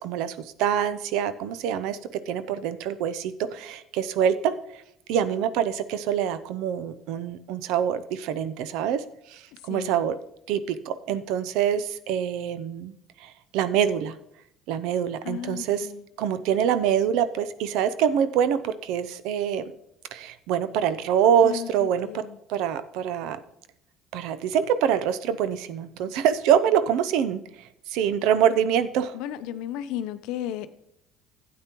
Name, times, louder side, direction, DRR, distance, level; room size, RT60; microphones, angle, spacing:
voice 1, 0.0-4.5 5.1-9.0 9.3-10.2 10.5-12.9 13.2-14.2 14.7-15.9 16.2-19.7 20.1-22.2 22.5-23.4 24.1-27.4 27.9-29.2, right 9 dB, 75° right, 0.6 m, -25 dB
voice 2, 9.7-10.0 15.2-16.0 21.4-21.7 22.0-22.4 29.1-30.7, left 11 dB, 75° left, 0.6 m, -34 dB
12.0 x 8.5 x 3.0 m
supercardioid pair, 90°, 0 cm